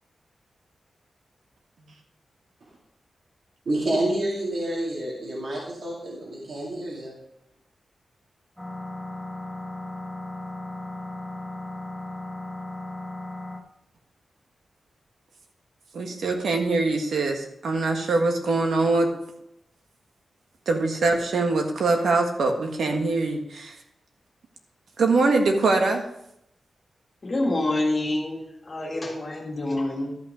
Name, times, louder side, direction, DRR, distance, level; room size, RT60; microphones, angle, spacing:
voice 1, 3.7-7.1, right 1 dB, 60° right, -5 dB, 2.2 m, -28 dB
sound 1, 8.6-13.6, left 2 dB, ahead, 1.5 m, -36 dB
voice 2, 15.9-19.1 20.7-23.8 25.0-26.0, right 3 dB, 90° right, 3 dB, 1.6 m, -23 dB
voice 3, 27.2-30.2, left 2 dB, 30° left, -1 dB, 1.8 m, -27 dB
12.5 x 5.8 x 5.0 m, 0.78 s
wide cardioid pair, 175°, 0 cm